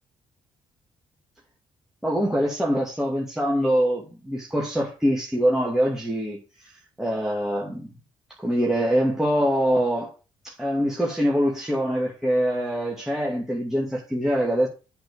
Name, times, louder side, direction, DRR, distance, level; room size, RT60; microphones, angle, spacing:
voice 1, 2.0-6.7 7.0-7.9 8.4-10.1 10.4-14.7, equal, 5° right, 2.4 m, -24 dB
8.1 x 4.4 x 6.9 m
supercardioid pair, 55°, 14 cm